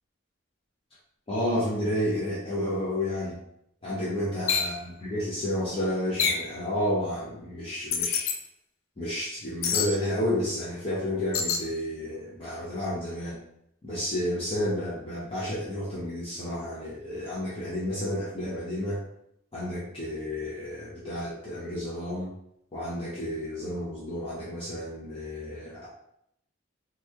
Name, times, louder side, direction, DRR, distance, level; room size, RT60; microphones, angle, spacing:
voice 1, 1.3-3.4 3.8-8.3 9.0-13.4 13.8-19.0 19.5-22.3 22.7-25.9, left 1 dB, 25° left, -8 dB, 0.6 m, -31 dB
sound 1, 4.5-4.7 6.2-6.5 7.9-8.4 9.6-9.9 11.3-11.6, left 6 dB, 75° left, 0.4 m, -26 dB
2.9 x 2.2 x 3.5 m, 0.76 s
head